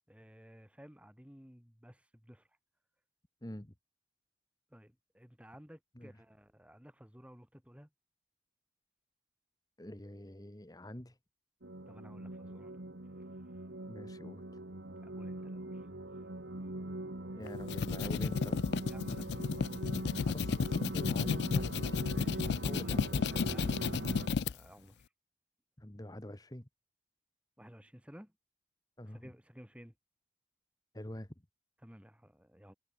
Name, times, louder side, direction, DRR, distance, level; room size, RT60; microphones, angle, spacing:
voice 1, 0.1-2.4 4.7-7.9 11.9-12.8 13.5-13.6 15.0-15.8 18.9-19.7 22.1-22.6 22.8-23.0 23.3-24.9 27.6-28.3 29.1-29.9 31.8-32.7, equal, 5° right, 2.6 m, -55 dB
voice 2, 3.4-3.7 5.9-6.2 9.8-11.2 13.9-14.6 17.3-18.6 20.2-23.2 25.8-26.7 29.0-29.3 30.9-31.3, left 1 dB, 20° left, 1.4 m, -46 dB
sound 1, 11.6-24.3, right 1 dB, 85° right, 2.0 m, -42 dB
sound 2, 17.5-24.5, left 5 dB, 70° left, 0.4 m, -33 dB
head